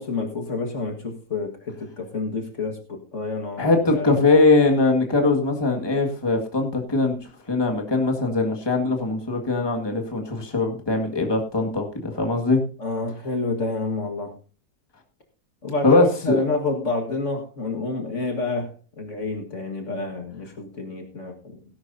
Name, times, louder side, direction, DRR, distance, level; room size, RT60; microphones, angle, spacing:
voice 1, 0.0-4.2 12.8-14.3 15.6-21.6, left 3 dB, 50° left, 4 dB, 2.0 m, -29 dB
voice 2, 3.6-7.2 7.5-12.6 15.8-16.4, left 3 dB, 15° left, 2 dB, 1.8 m, -21 dB
17.5 x 11.0 x 2.7 m, 0.36 s
omnidirectional pair, 1.7 m